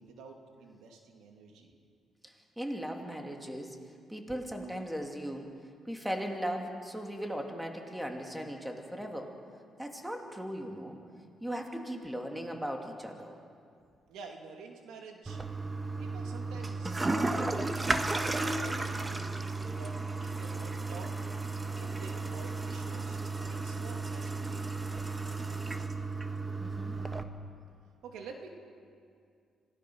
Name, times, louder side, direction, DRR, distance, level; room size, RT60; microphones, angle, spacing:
voice 1, 0.0-1.8 14.1-15.4 16.0-17.4 17.8-19.4 19.7-21.4 21.8-25.1 28.0-28.5, right 4 dB, 85° right, 2 dB, 2.6 m, -49 dB
voice 2, 2.2-3.8 4.1-5.5 5.9-9.3 9.8-11.0 11.4-13.4 26.6-27.0, equal, 5° right, 2 dB, 2.6 m, -38 dB
Toilet flush, 15.3-27.2, right 3 dB, 20° right, 1.2 m, -34 dB
26.0 x 17.0 x 6.3 m, 2.2 s
cardioid pair, 90°, 0 cm